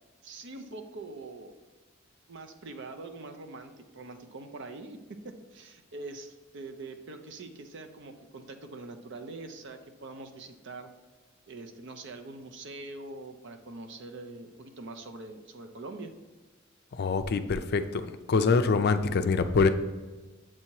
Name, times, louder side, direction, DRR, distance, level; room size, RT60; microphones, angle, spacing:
voice 1, 0.2-1.6 2.3-10.9 11.5-16.1, right 2 dB, 60° right, 6 dB, 0.6 m, -43 dB
voice 2, 16.9-18.0 18.3-19.7, left 4 dB, 50° left, 9 dB, 0.4 m, -24 dB
7.5 x 2.8 x 4.6 m, 1.3 s
head